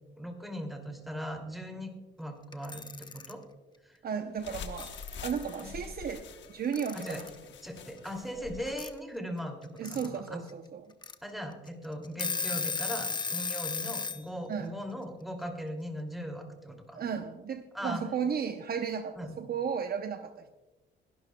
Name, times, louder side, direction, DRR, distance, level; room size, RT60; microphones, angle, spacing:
voice 1, 0.2-1.9 2.2-3.4 3.8-4.0 5.6-5.7 6.9-7.2 7.6-10.4 11.2-17.0 17.7-18.0 19.2-19.4, equal, ahead, 3 dB, 2.6 m, -39 dB
Alarm / Clock, 2.5-3.3 4.5-4.6 4.8-5.6 6.7-7.4 8.8-8.9 9.6-10.1 10.5-10.6 11.0-11.1 11.7-11.8 12.0-14.2, left 5 dB, 20° left, 0.7 m, -34 dB
voice 2, 4.0-4.9 5.2-7.3 9.8-10.9 14.5-14.7 16.9-20.5, right 7 dB, 50° right, 7 dB, 0.8 m, -34 dB
sound 1, 4.4-8.8, left 6 dB, 65° left, 1.1 m, -45 dB
21.5 x 11.5 x 2.3 m, 1.1 s
cardioid pair, 90°, 20 cm